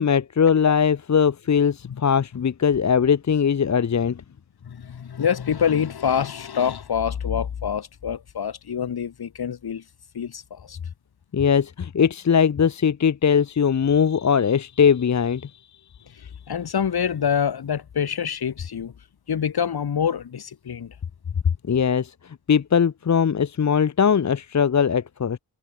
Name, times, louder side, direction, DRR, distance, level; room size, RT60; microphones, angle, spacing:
voice 1, 0.0-4.2 11.3-15.5 21.6-25.4, left 7 dB, 45° left, 1.1 m, -20 dB
voice 2, 4.6-9.8 10.1-10.8 16.1-18.9 19.3-20.9, left 8 dB, 75° left, 7.8 m, -26 dB
cardioid pair, 75°, 38 cm